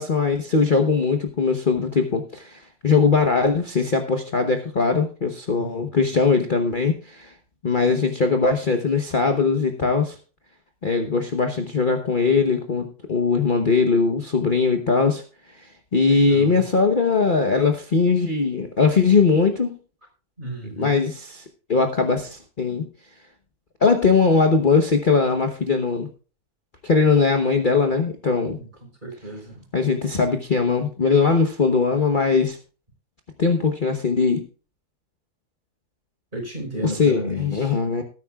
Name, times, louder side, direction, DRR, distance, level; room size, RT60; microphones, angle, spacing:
voice 1, 0.0-7.3 7.6-10.2 10.8-15.2 15.5-19.7 20.6-21.4 21.7-22.9 23.8-26.1 26.8-28.6 29.7-32.6 33.4-34.4 36.8-38.0, left 4 dB, 35° left, 5 dB, 1.1 m, -20 dB
voice 2, 16.1-16.6 20.4-21.0 29.0-29.5 36.3-37.7, equal, 30° right, 1 dB, 4.7 m, -32 dB
18.5 x 9.5 x 2.4 m, 0.36 s
omnidirectional pair, 1.6 m